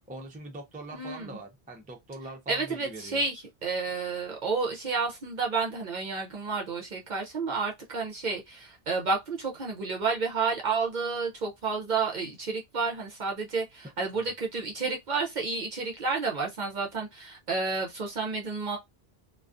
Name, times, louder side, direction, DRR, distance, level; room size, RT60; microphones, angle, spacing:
voice 1, 0.1-3.2 14.2-14.3, right 2 dB, 10° right, 0.4 m, -42 dB
voice 2, 0.9-1.4 2.5-18.8, right 4 dB, 55° right, 0.6 m, -31 dB
2.3 x 2.2 x 2.5 m
omnidirectional pair, 1.0 m